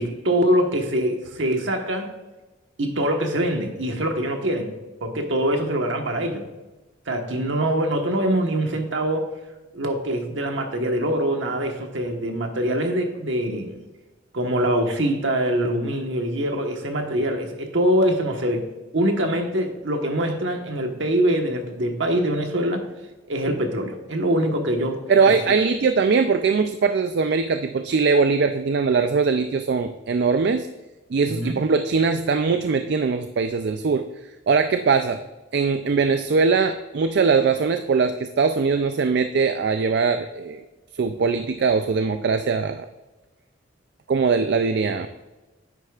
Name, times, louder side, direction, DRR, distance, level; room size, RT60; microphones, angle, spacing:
voice 1, 0.0-2.1 2.8-4.7 5.0-6.5 7.1-9.3 9.7-13.8 14.3-18.7 18.9-22.8 23.3-25.5 31.3-31.6, right 1 dB, 75° right, 4 dB, 1.3 m, -24 dB
voice 2, 25.1-30.7 31.1-34.1 34.5-35.2 35.5-40.6 40.9-42.9 44.1-45.1, right 5 dB, 60° right, 8 dB, 0.4 m, -21 dB
9.9 x 8.1 x 2.4 m, 1.1 s
head